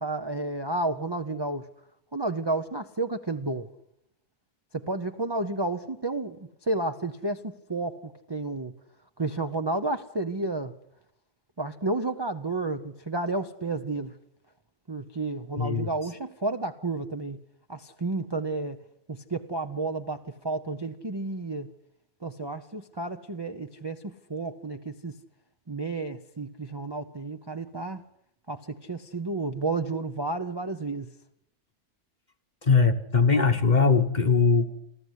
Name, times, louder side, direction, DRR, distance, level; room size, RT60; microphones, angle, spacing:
voice 1, 0.0-1.7 2.1-3.7 4.7-8.0 8.3-8.7 9.2-10.7 11.6-14.1 14.9-17.4 17.7-18.8 19.1-21.7 22.2-25.1 25.7-28.0 28.5-31.1, right 2 dB, 25° right, 0.6 m, -31 dB
voice 2, 15.6-15.9 32.6-34.8, left 4 dB, 30° left, 1.2 m, -21 dB
27.5 x 14.0 x 8.2 m
omnidirectional pair, 1.6 m